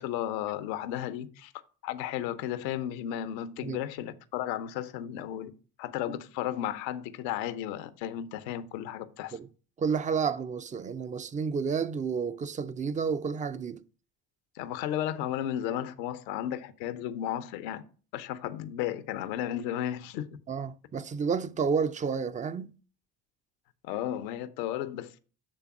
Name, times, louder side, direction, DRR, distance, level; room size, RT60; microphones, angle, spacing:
voice 1, 0.0-1.5 1.8-5.5 5.8-9.4 14.5-17.8 18.1-20.3 23.8-25.2, left 11 dB, 85° left, 0.8 m, -34 dB
voice 2, 9.8-13.8 20.5-22.7, right 6 dB, 15° right, 0.4 m, -30 dB
8.1 x 3.5 x 5.9 m
hypercardioid pair, 65°, 50 cm